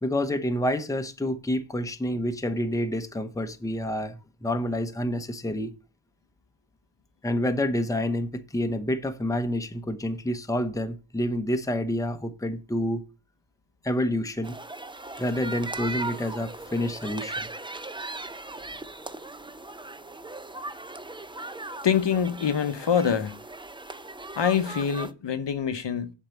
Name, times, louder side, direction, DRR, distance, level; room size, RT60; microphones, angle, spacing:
voice 1, 0.0-5.7 7.2-13.0 13.8-14.6 15.2-17.5, left 1 dB, 5° left, 0.8 m, -28 dB
sound 1, 14.4-25.1, right 2 dB, 10° right, 0.5 m, -38 dB
voice 2, 21.8-23.4 24.4-26.1, left 7 dB, 60° left, 0.9 m, -25 dB
7.4 x 4.6 x 6.9 m
wide cardioid pair, 80°, 48 cm